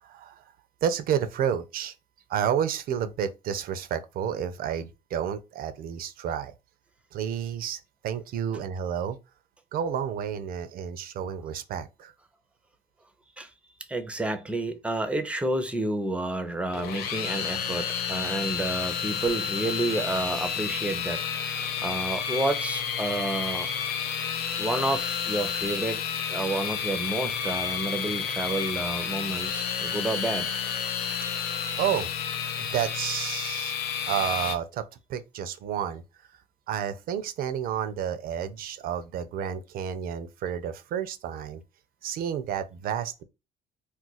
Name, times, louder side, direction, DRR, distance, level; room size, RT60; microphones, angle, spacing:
voice 1, 0.0-0.4 0.8-1.9 2.3-6.5 7.1-9.2 9.7-12.1 31.8-32.1 32.6-33.7 34.1-34.8 35.1-36.0 36.7-41.6 42.0-43.2, right 9 dB, 60° right, 0.5 m, -30 dB
voice 2, 13.9-23.7 24.6-26.0 26.3-30.5, right 2 dB, 5° right, 0.5 m, -30 dB
sound 1, 16.7-34.6, left 7 dB, 70° left, 0.5 m, -31 dB
2.4 x 2.2 x 4.0 m
supercardioid pair, 90°, 17 cm